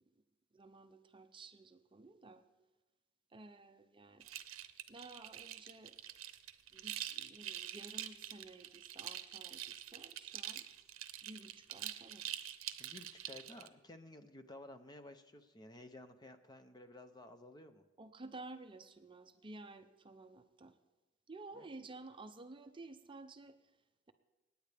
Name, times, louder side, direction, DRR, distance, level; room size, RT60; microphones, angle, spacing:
voice 1, 0.5-2.4 3.3-4.3 4.9-6.0 6.7-10.7 11.2-12.3 18.0-20.8 21.3-23.6, right 2 dB, 25° right, 9 dB, 0.6 m, -53 dB
sound 1, 4.2-13.7, right 12 dB, 75° right, 0.7 m, -45 dB
voice 2, 12.8-17.8 21.5-21.7, left 2 dB, 20° left, 9 dB, 0.6 m, -54 dB
26.5 x 9.5 x 3.4 m, 1.2 s
head